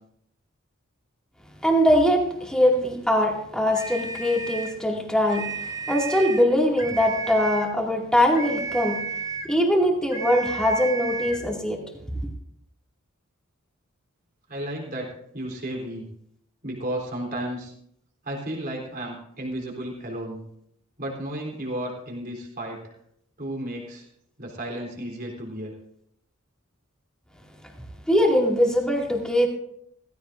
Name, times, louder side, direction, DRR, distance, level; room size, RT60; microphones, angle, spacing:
voice 1, 1.6-5.4 5.9-9.0 9.4-11.8 28.1-29.5, equal, 5° left, -1 dB, 2.3 m, -22 dB
sound 1, 3.7-4.8 5.2-6.5 6.8-7.7 8.3-9.6 10.1-11.5, right 5 dB, 15° right, 0.9 m, -33 dB
voice 2, 14.5-16.1 16.6-17.7 18.2-20.4 21.0-22.8 23.4-24.1 24.4-25.7, right 1 dB, 45° right, 0 dB, 3.7 m, -33 dB
16.5 x 15.5 x 2.6 m, 0.71 s
head